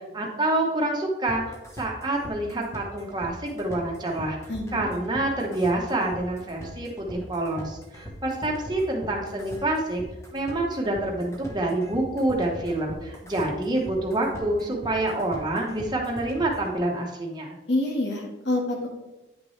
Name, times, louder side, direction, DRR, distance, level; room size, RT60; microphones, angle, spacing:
voice 1, 0.1-1.4 1.8-4.4 4.7-10.0 10.3-17.6, right 2 dB, 20° right, -1 dB, 1.1 m, -27 dB
sound 1, 1.3-16.7, equal, 15° left, 1.0 m, -41 dB
voice 2, 4.5-4.9 17.7-18.9, left 1 dB, 65° left, -1 dB, 1.4 m, -27 dB
9.4 x 6.0 x 3.2 m, 1.1 s
head